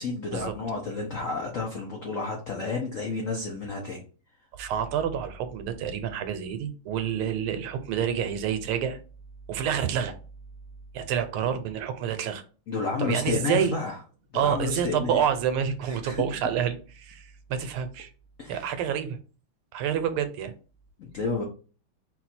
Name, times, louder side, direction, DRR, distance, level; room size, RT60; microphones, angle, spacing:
voice 1, 0.0-4.0 12.7-14.0 14.3-15.2 15.9-16.2 18.4-18.7 21.0-21.4, left 4 dB, 85° left, 1 dB, 0.7 m, -31 dB
voice 2, 4.5-9.0 9.5-10.1 10.9-12.4 13.0-13.8 14.3-18.1 18.5-19.2 19.7-20.5, right 8 dB, 80° right, 9 dB, 1.5 m, -28 dB
4.2 x 2.3 x 4.2 m, 0.37 s
omnidirectional pair, 2.4 m